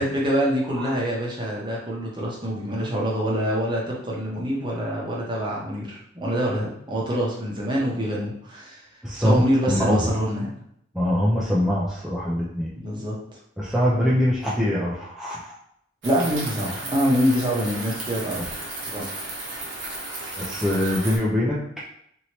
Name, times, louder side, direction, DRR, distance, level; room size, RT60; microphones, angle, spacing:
voice 1, 0.0-8.8 9.1-10.5 12.8-13.1 16.0-18.5 18.8-19.1, equal, 25° right, -4 dB, 0.8 m, -25 dB
voice 2, 9.0-10.0 10.9-12.7 13.6-15.6 20.4-21.8, left 1 dB, ahead, -8 dB, 0.4 m, -23 dB
sound 1, 16.0-21.2, right 2 dB, 70° right, 0.9 m, -34 dB
2.9 x 2.7 x 3.0 m, 0.72 s
head